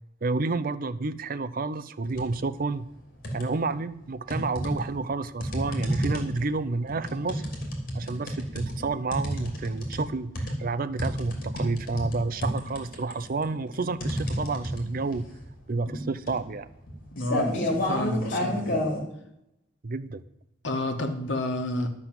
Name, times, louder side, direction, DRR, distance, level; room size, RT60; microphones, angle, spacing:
voice 1, 0.2-2.9 3.3-7.4 7.9-15.3 15.7-16.7 19.8-20.2, right 3 dB, 45° right, 15 dB, 0.5 m, -30 dB
sound 1, 2.0-2.4 2.8-3.7 4.3-19.0, equal, 45° left, 2.9 m, -31 dB
voice 2, 17.1-18.9 20.6-21.9, left 1 dB, 65° left, 5 dB, 1.6 m, -30 dB
12.0 x 6.1 x 7.6 m, 0.82 s
head